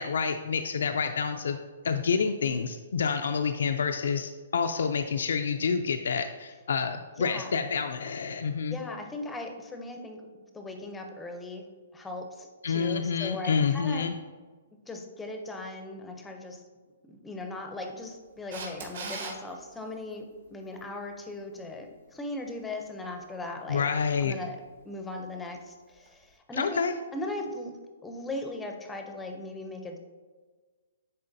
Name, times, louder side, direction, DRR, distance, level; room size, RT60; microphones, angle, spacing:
voice 1, 0.0-1.6 1.8-8.8 12.6-14.1 23.7-24.3 26.6-26.9, left 6 dB, 80° left, 7 dB, 0.3 m, -28 dB
voice 2, 7.2-7.6 8.7-10.2 10.5-11.7 11.9-14.1 14.9-16.6 17.1-20.2 20.5-23.9 24.2-24.6 24.8-26.8 27.1-27.7 28.0-30.0, left 2 dB, 5° left, 4 dB, 0.5 m, -38 dB
Camera, 18.5-19.3 26.1-26.2, right 4 dB, 60° right, 1.4 m, -37 dB
9.6 x 3.8 x 2.6 m, 1.4 s
hypercardioid pair, 165°, 0 cm